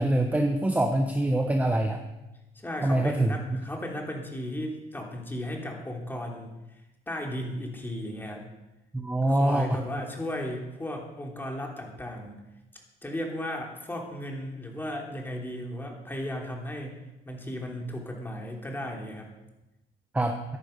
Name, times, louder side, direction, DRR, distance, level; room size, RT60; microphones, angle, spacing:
voice 1, 0.0-2.0 2.8-3.6 8.9-9.7 20.1-20.4, right 1 dB, 10° right, 4 dB, 1.0 m, -25 dB
voice 2, 2.5-6.5 7.1-8.5 9.2-12.3 13.0-16.9 17.2-19.3, equal, 10° left, 0 dB, 3.1 m, -35 dB
14.0 x 10.5 x 5.3 m, 0.98 s
cardioid pair, 110°, 17 cm